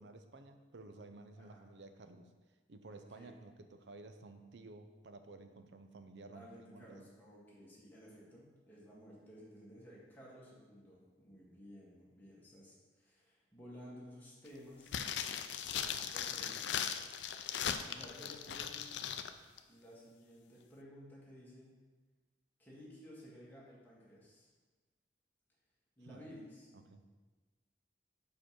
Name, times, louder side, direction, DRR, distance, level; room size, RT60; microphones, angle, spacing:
voice 1, 0.0-2.3 2.7-7.1 18.5-18.6 26.0-26.2 26.7-27.0, right 3 dB, 70° right, 8 dB, 0.6 m, -54 dB
voice 2, 2.9-3.3 6.3-15.0 15.5-16.6 17.3-17.4 17.8-18.9 19.7-21.7 22.6-24.5 26.0-26.7, equal, 10° left, -7 dB, 1.9 m, -55 dB
sound 1, 14.9-19.3 19.6-19.7, left 8 dB, 75° left, 0.4 m, -39 dB
5.2 x 5.0 x 5.9 m, 1.3 s
head